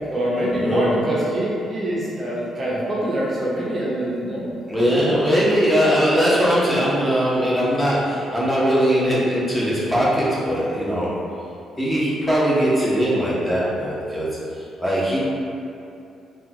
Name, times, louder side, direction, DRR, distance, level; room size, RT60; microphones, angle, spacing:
voice 1, 0.0-4.5, right 1 dB, 35° right, -6 dB, 0.5 m, -24 dB
voice 2, 0.5-0.9 4.7-11.1 11.8-14.3 14.5-15.2, equal, 5° left, -8 dB, 0.9 m, -20 dB
3.5 x 2.3 x 2.8 m, 2.6 s
cardioid pair, 90°, 0 cm